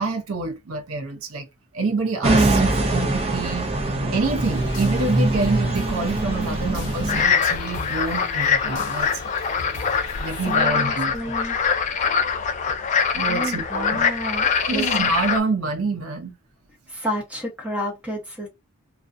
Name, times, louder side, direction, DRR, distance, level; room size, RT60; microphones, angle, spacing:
voice 1, 0.0-1.5 1.7-3.7 4.1-9.3 10.2-11.3 13.1-14.1 14.6-16.3, right 3 dB, 75° right, 0.6 m, -27 dB
sound 1, 2.2-7.2, right 2 dB, 30° right, 0.5 m, -22 dB
sound 2, 4.4-10.6, left 3 dB, 60° left, 0.8 m, -38 dB
sound 3, 7.1-15.4, left 6 dB, 35° left, 0.3 m, -23 dB
voice 2, 10.5-11.6 13.3-14.9 16.9-18.5, equal, 5° right, 0.8 m, -30 dB
2.4 x 2.1 x 2.5 m
head